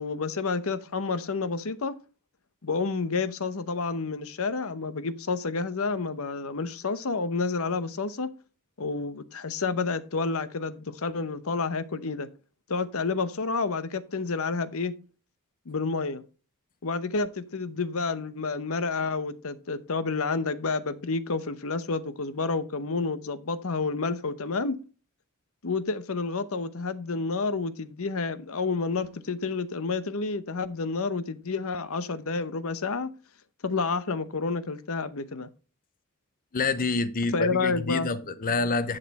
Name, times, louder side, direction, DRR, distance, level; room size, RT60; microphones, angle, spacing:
voice 1, 0.0-1.9 2.6-8.3 8.8-12.3 12.7-14.9 15.7-16.2 16.8-24.8 25.6-33.1 33.6-35.5 37.3-38.1, left 4 dB, 70° left, 0.9 m, -29 dB
voice 2, 36.5-39.0, left 3 dB, 40° left, 0.7 m, -27 dB
11.0 x 6.7 x 4.2 m
head